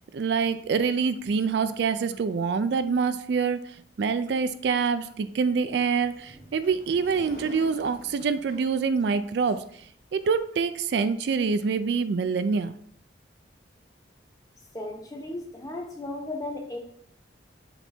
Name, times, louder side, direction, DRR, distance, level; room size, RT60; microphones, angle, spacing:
voice 1, 0.1-3.6 4.0-9.6 10.1-12.7, right 5 dB, 60° right, 11 dB, 0.3 m, -25 dB
sound 1, 5.7-10.4, equal, 50° left, 2.0 m, -48 dB
voice 2, 14.7-16.8, left 2 dB, 20° left, 2 dB, 0.9 m, -35 dB
7.1 x 3.4 x 4.2 m, 0.64 s
head